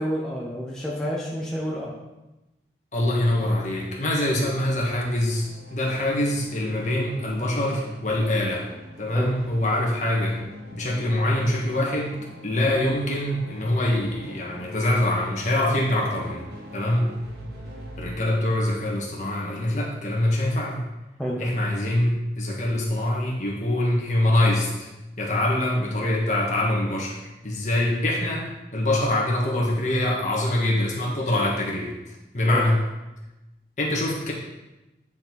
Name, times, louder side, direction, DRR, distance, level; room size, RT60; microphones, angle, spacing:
voice 1, 0.0-1.9 9.1-9.3 21.2-21.4 32.5-32.6, equal, 5° left, -5 dB, 0.9 m, -29 dB
voice 2, 2.9-8.6 9.0-10.4 10.7-12.1 12.4-16.5 16.7-17.2 18.0-20.8 21.4-24.9 25.2-27.2 27.4-31.9 32.3-32.8 33.8-34.3, left 1 dB, 45° left, -3 dB, 1.7 m, -24 dB
sound 1, 3.1-18.2, equal, 70° right, 1.3 m, -44 dB
9.5 x 4.6 x 4.0 m, 0.99 s
head